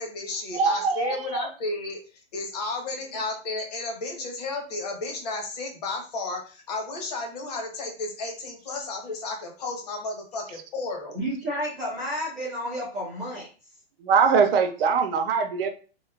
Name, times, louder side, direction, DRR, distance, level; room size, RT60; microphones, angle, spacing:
voice 1, 0.0-2.0 2.3-11.2, left 3 dB, 40° left, 0.8 m, -33 dB
voice 2, 0.5-1.5 14.0-15.7, right 5 dB, 65° right, 0.5 m, -22 dB
voice 3, 11.1-13.5, equal, ahead, 0.4 m, -31 dB
2.9 x 2.1 x 2.2 m
hypercardioid pair, 165°, 32 cm